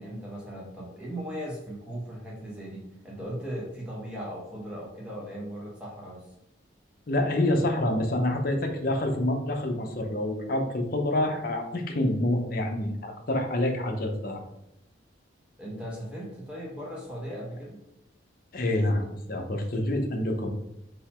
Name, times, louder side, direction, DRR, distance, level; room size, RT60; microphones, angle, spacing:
voice 1, 0.0-6.3 15.6-17.8, equal, 5° right, -4 dB, 1.2 m, -38 dB
voice 2, 7.1-14.4 18.5-20.5, left 1 dB, 50° left, 3 dB, 0.7 m, -27 dB
3.9 x 2.9 x 4.2 m, 0.85 s
head